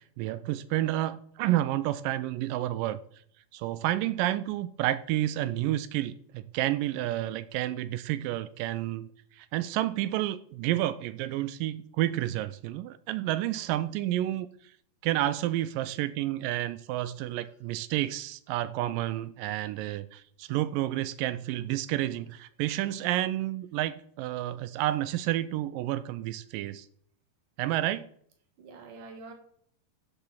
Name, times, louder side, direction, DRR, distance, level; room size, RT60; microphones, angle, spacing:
voice 1, 0.2-3.0 3.5-9.1 9.4-14.5 15.0-26.9 27.6-28.1, right 14 dB, 80° right, 2.1 m, -30 dB
voice 2, 13.4-13.8 17.3-17.5 28.6-29.3, right 3 dB, 65° right, 3.3 m, -48 dB
11.5 x 7.0 x 7.1 m
omnidirectional pair, 4.3 m